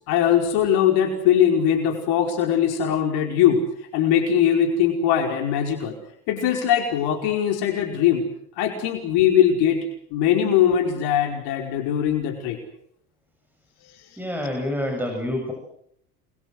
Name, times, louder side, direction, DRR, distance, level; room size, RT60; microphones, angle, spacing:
voice 1, 0.1-3.6 3.9-5.9 6.3-8.2 8.6-9.8 10.1-12.6, left 9 dB, 60° left, 4 dB, 5.1 m, -21 dB
voice 2, 14.2-15.5, left 1 dB, 5° right, 2 dB, 7.7 m, -27 dB
28.5 x 23.0 x 7.9 m, 0.70 s
hypercardioid pair, 85°, 43 cm